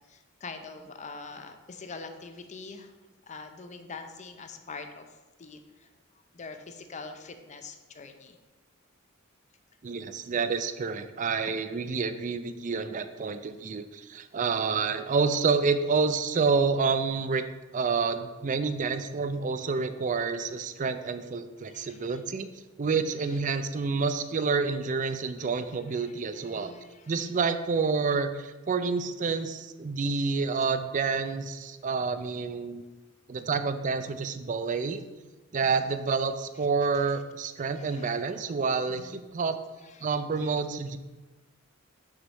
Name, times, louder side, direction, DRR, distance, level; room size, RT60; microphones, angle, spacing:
voice 1, 0.1-2.9 3.3-5.1 5.4-5.9 6.3-8.4 21.6-22.2 22.9-23.4 25.7-27.4 35.6-35.9 36.9-37.0 37.7-38.2 38.9-39.2 39.8-40.5, left 4 dB, 35° left, 6 dB, 0.6 m, -45 dB
voice 2, 9.8-17.4 17.7-22.5 22.8-26.7 27.1-32.8 33.3-35.0 35.5-39.6 40.0-41.0, right 4 dB, 40° right, 10 dB, 0.4 m, -28 dB
6.2 x 4.1 x 6.3 m, 1.2 s
head